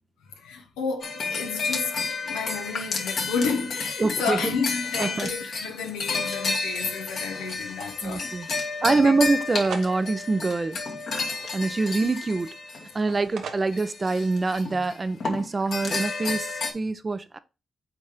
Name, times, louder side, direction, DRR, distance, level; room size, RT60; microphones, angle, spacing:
voice 1, 0.4-9.0, left 5 dB, 85° left, 1.2 m, -31 dB
sound 1, 1.0-13.2 13.7-14.9 15.2-16.7, left 4 dB, 65° left, 1.8 m, -31 dB
sound 2, 3.1-3.9 4.4-5.4 6.1-6.2 6.8-8.0 9.1-10.1 10.9-12.0 12.7-13.9, right 5 dB, 75° right, 0.9 m, -43 dB
voice 2, 4.0-4.5 5.0-5.3 8.0-8.5 8.8-10.8 11.5-12.5 12.9-17.4, right 3 dB, 40° right, 0.8 m, -25 dB
6.0 x 4.2 x 5.1 m
hypercardioid pair, 40°, 0 cm